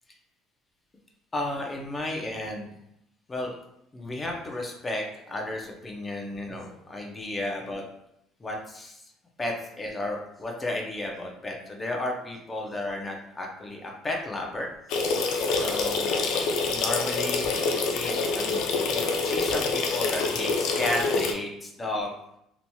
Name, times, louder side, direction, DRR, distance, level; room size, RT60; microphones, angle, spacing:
voice 1, 1.3-2.7 3.3-3.5 3.9-7.8 8.4-9.0 9.4-14.7 15.6-16.3 16.6-22.1, left 1 dB, 20° left, 0 dB, 0.5 m, -33 dB
sound 1, 14.9-21.3, left 4 dB, 70° left, 0.4 m, -26 dB
2.9 x 2.7 x 2.2 m, 0.79 s
cardioid pair, 125°, 0 cm